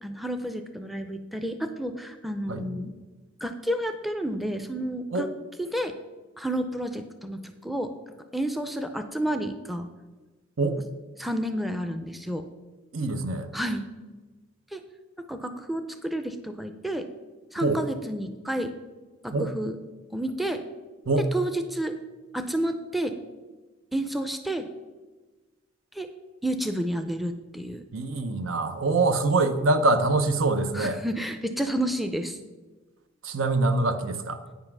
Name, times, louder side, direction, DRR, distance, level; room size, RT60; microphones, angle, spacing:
voice 1, 0.0-2.9 3.4-5.3 5.6-5.9 6.4-7.9 8.3-9.9 11.2-12.5 13.5-13.9 14.7-14.8 15.3-17.1 17.5-18.7 19.2-19.8 20.1-20.6 21.3-22.0 22.3-23.2 23.9-24.7 25.9-26.1 26.4-27.8 30.7-32.4, right 1 dB, ahead, 8 dB, 0.4 m, -30 dB
voice 2, 12.9-13.5 17.6-17.8 19.3-19.5 21.1-21.3 27.9-31.0 33.2-34.4, right 2 dB, 90° right, 9 dB, 0.8 m, -24 dB
9.2 x 5.5 x 6.0 m, 1.3 s
head